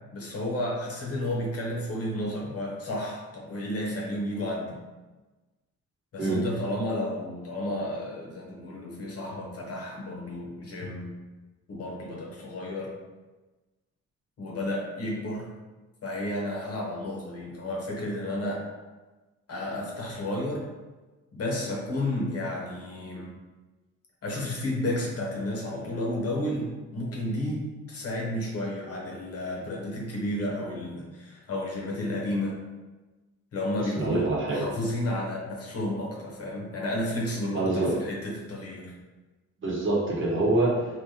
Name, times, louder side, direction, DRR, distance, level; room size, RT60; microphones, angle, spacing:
voice 1, 0.1-4.8 6.1-11.1 11.7-12.9 14.4-15.5 16.0-18.6 19.5-20.6 21.3-23.3 24.2-32.6 33.5-38.9, left 1 dB, 50° left, -2 dB, 1.0 m, -32 dB
voice 2, 33.8-34.7 37.5-37.9 39.6-40.7, right 2 dB, 40° right, -4 dB, 1.1 m, -25 dB
3.4 x 2.9 x 2.8 m, 1.2 s
cardioid pair, 90°, 30 cm